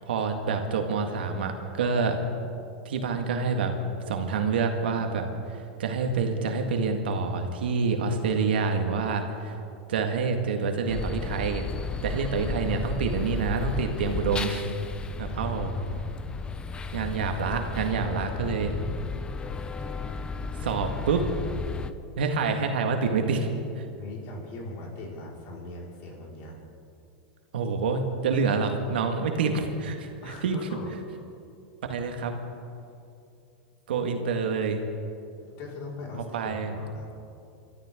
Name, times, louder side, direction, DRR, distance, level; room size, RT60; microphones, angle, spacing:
voice 1, 0.0-2.2 2.9-3.7 4.1-9.6 9.9-11.7 12.0-14.7 15.2-15.7 16.9-18.7 20.6-21.2 22.2-23.5 23.8-23.9 27.5-30.6 31.9-32.3 33.9-34.8 36.3-36.7, right 5 dB, 85° right, 4 dB, 1.9 m, -27 dB
sound 1, 10.9-21.9, left 4 dB, 20° left, 0.7 m, -34 dB
voice 2, 15.3-16.1 24.0-26.6 30.2-30.9 35.4-37.1, left 2 dB, 50° left, -3 dB, 5.1 m, -40 dB
28.5 x 13.0 x 3.8 m, 2.6 s
hypercardioid pair, 125°, 5 cm